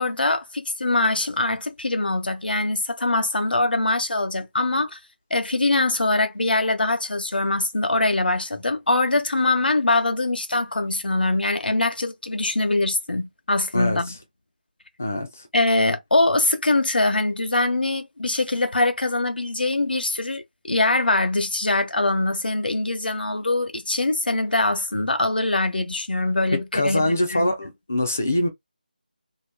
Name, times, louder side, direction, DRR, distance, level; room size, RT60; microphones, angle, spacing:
voice 1, 0.0-5.0 5.3-14.1 15.5-27.5, left 2 dB, 85° left, 0.9 m, -23 dB
voice 2, 15.0-15.5 26.5-28.5, left 1 dB, 15° left, 0.3 m, -24 dB
2.9 x 2.5 x 3.4 m
figure-of-eight pair, 180°, 5 cm